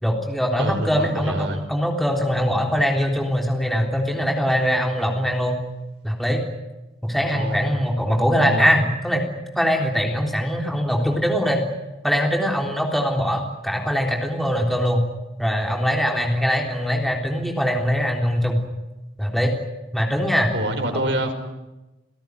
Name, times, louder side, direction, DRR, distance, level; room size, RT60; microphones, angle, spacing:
voice 1, 0.0-5.6 6.0-6.5 7.0-9.2 9.6-11.7 12.0-15.0 15.4-18.7 19.2-19.6 19.9-20.5 20.9-21.1, equal, ahead, 1 dB, 3.6 m, -22 dB
voice 2, 0.6-1.6 7.3-7.6 8.4-8.7 20.5-21.3, right 1 dB, 85° right, 6 dB, 5.0 m, -26 dB
29.5 x 17.5 x 9.6 m, 1.0 s
head